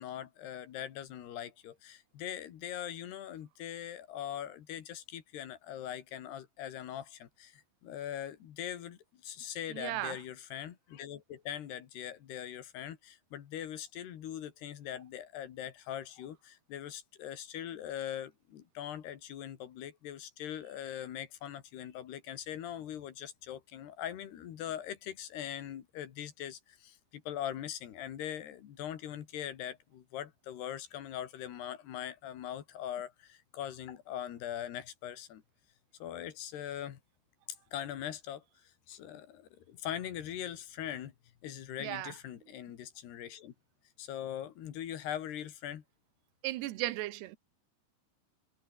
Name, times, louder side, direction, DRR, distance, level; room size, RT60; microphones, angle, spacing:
voice 1, 0.0-35.4 36.0-37.0 37.7-38.4 38.9-41.1 41.4-43.5 44.0-45.8, left 10 dB, 80° left, 4.1 m, -41 dB
voice 2, 9.7-10.2 41.8-42.2 46.4-47.4, right 16 dB, 90° right, 3.1 m, -36 dB
omnidirectional pair, 4.7 m